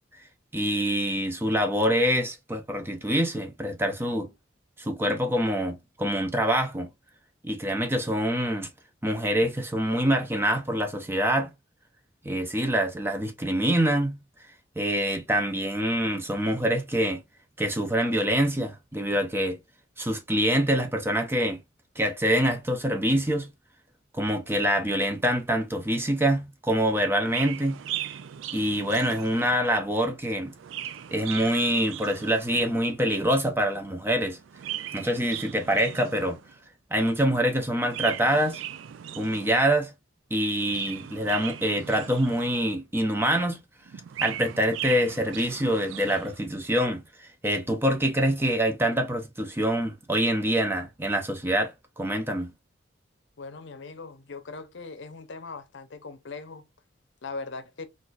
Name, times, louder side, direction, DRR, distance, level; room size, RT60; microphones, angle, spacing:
voice 1, 0.5-4.3 4.8-6.9 7.4-8.7 9.0-11.5 12.2-14.2 14.8-17.2 17.6-19.6 20.0-21.6 22.0-23.5 24.1-27.8 28.5-30.5 31.1-34.4 34.9-36.4 36.9-38.6 39.2-39.9 40.3-43.6 44.2-52.5, right 1 dB, 10° right, 0.5 m, -25 dB
Chirp tweet, 27.2-29.7 30.4-32.8 34.4-36.6 37.8-39.7 40.5-42.8 43.9-46.4, right 11 dB, 85° right, 0.4 m, -38 dB
voice 2, 53.4-56.6 57.2-57.9, left 4 dB, 70° left, 0.7 m, -40 dB
4.1 x 2.5 x 2.3 m
head